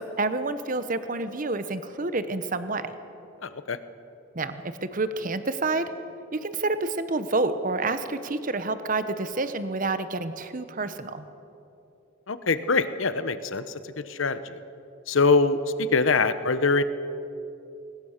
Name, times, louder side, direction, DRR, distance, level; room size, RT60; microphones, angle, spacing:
voice 1, 0.0-2.9 4.3-5.9 6.3-11.2, right 3 dB, 40° right, 11 dB, 1.0 m, -28 dB
voice 2, 3.4-3.8 12.3-14.6 15.1-16.8, left 4 dB, 75° left, 12 dB, 1.0 m, -24 dB
22.0 x 20.0 x 6.6 m, 2.8 s
head